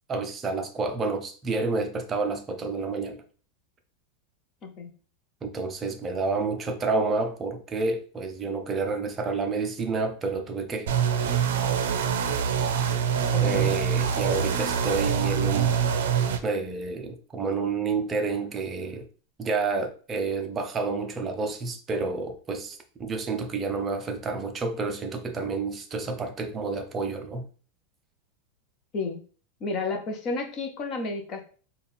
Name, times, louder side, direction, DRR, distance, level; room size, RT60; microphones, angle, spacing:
voice 1, 0.1-3.2 5.4-10.9 13.4-15.7 16.4-19.1 19.4-27.4, right 4 dB, 15° right, 0.5 m, -29 dB
sound 1, 10.9-16.4, right 7 dB, 75° right, 0.5 m, -25 dB
voice 2, 13.3-13.7 28.9-29.2 29.6-31.4, left 3 dB, 25° left, 0.6 m, -31 dB
4.1 x 2.2 x 3.5 m
supercardioid pair, 165°, 0 cm